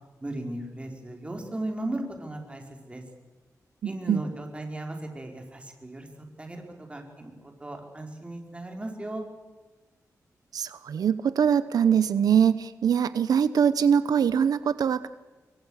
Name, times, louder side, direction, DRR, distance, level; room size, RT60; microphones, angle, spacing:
voice 1, 0.2-3.0 3.8-6.1 6.4-9.2, right 1 dB, 20° right, 3 dB, 4.9 m, -36 dB
voice 2, 10.5-15.1, right 8 dB, 90° right, 14 dB, 0.9 m, -23 dB
27.0 x 22.0 x 6.5 m, 1.2 s
wide cardioid pair, 120°, 6 cm